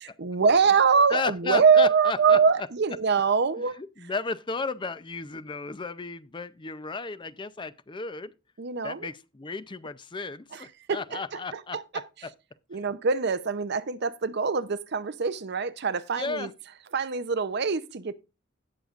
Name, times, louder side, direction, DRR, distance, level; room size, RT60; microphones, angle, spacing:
voice 1, 0.2-3.8 8.6-9.1 10.5-12.0 12.7-16.5 16.9-18.1, right 5 dB, 55° right, 0.6 m, -24 dB
voice 2, 1.1-2.7 3.8-8.3 8.8-12.3 16.1-16.5, left 4 dB, 25° left, 0.5 m, -34 dB
17.0 x 6.6 x 2.4 m
head